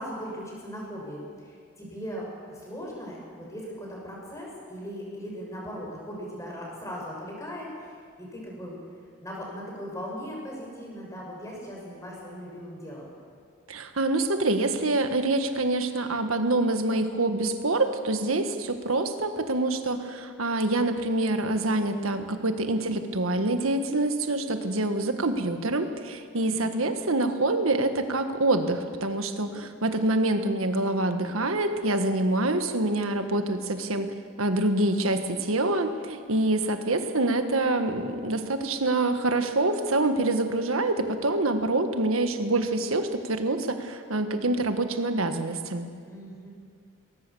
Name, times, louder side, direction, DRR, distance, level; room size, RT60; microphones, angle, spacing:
voice 1, 0.0-8.7 9.2-13.1 26.4-26.9 46.0-46.5, equal, 15° left, -3 dB, 6.0 m, -39 dB
voice 2, 13.7-45.9, right 2 dB, 90° right, 7 dB, 1.6 m, -26 dB
21.0 x 19.0 x 7.1 m, 2.1 s
head